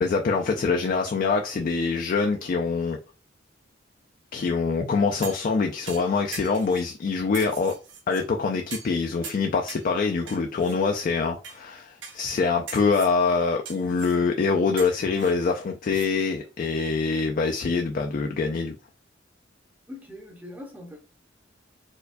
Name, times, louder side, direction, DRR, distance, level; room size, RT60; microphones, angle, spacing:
voice 1, 0.0-3.0 4.3-7.7 8.1-18.8, left 4 dB, 45° left, 0.3 m, -24 dB
sound 1, 5.2-5.5 5.9-6.9 7.3-8.2 8.7-9.0 9.2-9.9 10.3-10.8 11.4-11.6 12.0-12.4 12.7-13.1 13.6-14.2 14.8-16.1 16.4-16.5, right 5 dB, 75° right, 0.9 m, -41 dB
voice 2, 19.9-21.0, left 1 dB, 10° right, 0.7 m, -41 dB
4.3 x 2.2 x 2.5 m
head